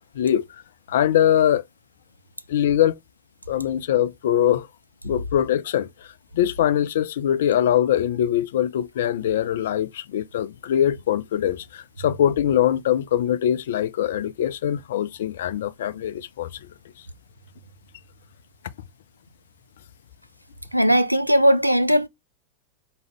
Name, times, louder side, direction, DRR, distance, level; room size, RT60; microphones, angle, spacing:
voice 1, 0.9-1.6 2.5-2.9 3.5-4.7 5.0-5.9 6.3-16.5, left 10 dB, 60° left, 0.3 m, -22 dB
voice 2, 20.7-22.1, equal, 90° right, 0.4 m, -18 dB
4.9 x 2.0 x 3.1 m
figure-of-eight pair, 90°, 0 cm